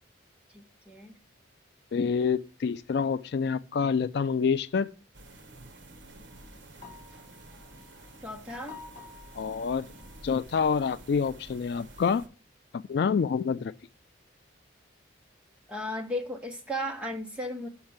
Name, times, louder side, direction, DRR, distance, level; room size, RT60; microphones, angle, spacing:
voice 1, 0.5-1.1 8.2-8.8 15.7-17.7, equal, 5° right, 1.0 m, -35 dB
voice 2, 1.9-4.9 9.3-9.9 10.2-12.2 12.9-13.7, left 6 dB, 55° left, 0.3 m, -27 dB
sound 1, 5.1-12.3, right 2 dB, 70° right, 1.0 m, -50 dB
sound 2, 6.2-11.6, left 5 dB, 30° left, 1.4 m, -53 dB
6.4 x 5.9 x 7.2 m
head